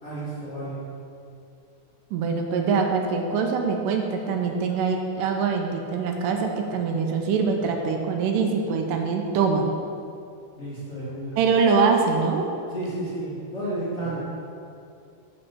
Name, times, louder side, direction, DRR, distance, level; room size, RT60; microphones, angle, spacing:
voice 1, 0.0-0.9 10.6-11.4 12.7-14.2, right 1 dB, 45° left, -10 dB, 0.8 m, -32 dB
voice 2, 2.1-9.7 11.4-12.5, right 5 dB, 80° right, 3 dB, 2.2 m, -23 dB
5.5 x 5.1 x 6.1 m, 2.5 s
omnidirectional pair, 3.8 m